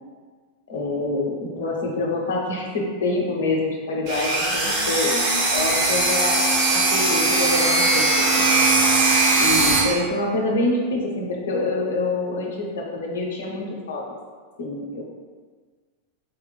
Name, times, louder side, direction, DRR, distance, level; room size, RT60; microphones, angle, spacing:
voice 1, 0.7-5.1 5.5-6.5 6.7-8.5 9.4-14.0 14.6-15.0, left 2 dB, 60° left, -1 dB, 0.6 m, -26 dB
sound 1, 4.1-9.8, right 3 dB, 45° right, 0.8 m, -20 dB
4.1 x 2.9 x 2.2 m, 1.5 s
figure-of-eight pair, 90°, 0 cm